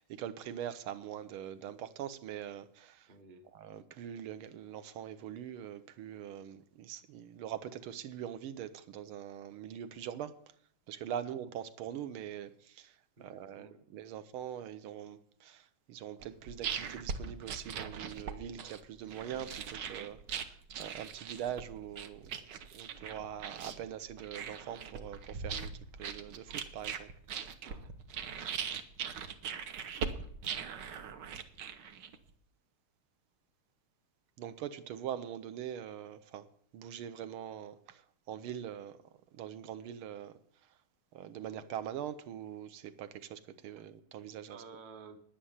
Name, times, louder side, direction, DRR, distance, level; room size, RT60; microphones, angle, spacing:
voice 1, 0.0-3.1 3.6-10.4 10.9-22.4 22.7-25.7 26.0-27.1 34.4-36.5 36.7-39.0 39.3-40.3 41.1-44.6, right 10 dB, 80° right, 1.6 m, -43 dB
voice 2, 3.1-3.5 11.2-11.3 13.2-13.9 27.6-28.0 29.5-29.6 43.8-43.9 44.5-45.2, right 5 dB, 35° right, 0.8 m, -53 dB
sound 1, 16.2-32.3, right 6 dB, 60° right, 1.4 m, -41 dB
10.0 x 9.7 x 7.2 m
omnidirectional pair, 2.4 m